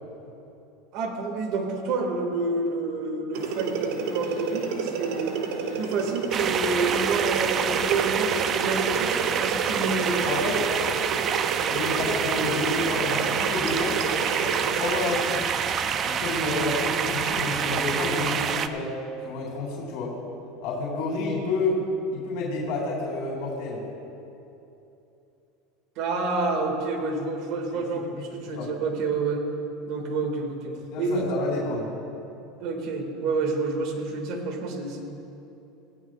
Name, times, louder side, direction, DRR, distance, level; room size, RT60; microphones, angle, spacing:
voice 1, 0.9-5.4 5.8-10.2 26.0-29.4 29.9-31.3 32.6-35.0, right 3 dB, 60° right, 3 dB, 2.0 m, -28 dB
sound 1, 3.3-15.2, right 5 dB, 75° right, 1.5 m, -31 dB
sound 2, 6.3-18.7, right 7 dB, 40° right, 0.6 m, -27 dB
voice 2, 10.2-10.6 11.5-14.0 14.8-15.5 16.0-18.9 19.2-20.1 20.6-21.8 22.1-23.8 27.7-28.0 28.5-28.7 30.9-31.9, left 2 dB, 70° left, -4 dB, 3.4 m, -29 dB
20.0 x 15.5 x 2.4 m, 2.9 s
supercardioid pair, 115°, 0 cm